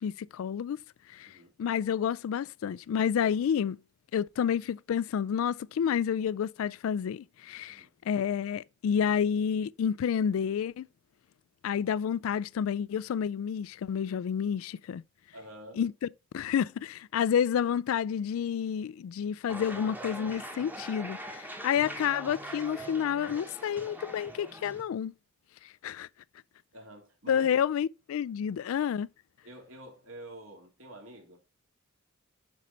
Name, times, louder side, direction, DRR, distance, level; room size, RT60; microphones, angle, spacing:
voice 1, 0.0-0.8 1.1-3.8 4.1-10.9 11.6-15.0 15.8-15.9 16.3-25.1 25.8-26.1 27.3-29.1, left 8 dB, 70° left, 0.3 m, -29 dB
voice 2, 15.3-15.8 26.7-27.6 29.4-31.4, right 1 dB, 70° right, 2.8 m, -48 dB
sound 1, 19.5-24.8, right 1 dB, 10° right, 1.0 m, -42 dB
7.5 x 5.3 x 3.9 m
head